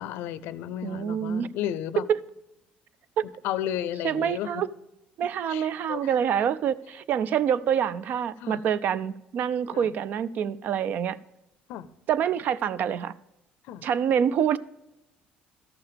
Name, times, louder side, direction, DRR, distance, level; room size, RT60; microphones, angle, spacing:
voice 1, 0.0-2.0 3.4-4.5 5.5-6.1 8.4-8.6 9.7-9.9 11.7-11.9 13.7-13.9, left 11 dB, 85° left, 0.5 m, -33 dB
voice 2, 0.8-1.5 2.1-2.2 3.2-3.3 4.0-4.7 5.2-11.2 12.1-13.1 13.8-14.6, right 8 dB, 55° right, 0.4 m, -26 dB
13.5 x 5.8 x 5.0 m
cardioid pair, 135°, 4 cm